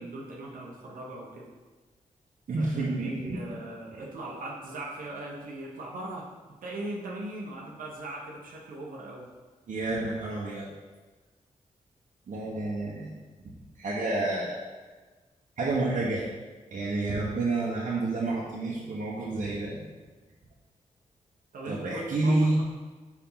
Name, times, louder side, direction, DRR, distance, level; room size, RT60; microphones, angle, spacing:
voice 1, 0.0-1.5 2.6-6.3 6.6-9.3 21.5-22.6, right 2 dB, 90° right, -3 dB, 1.0 m, -39 dB
voice 2, 2.5-3.6 9.7-10.7 12.3-13.1 13.7-14.6 15.6-16.3 16.7-19.8 21.7-22.6, right 2 dB, 65° right, -6 dB, 1.1 m, -29 dB
4.8 x 4.5 x 5.6 m, 1.3 s
cardioid pair, 60°, 14 cm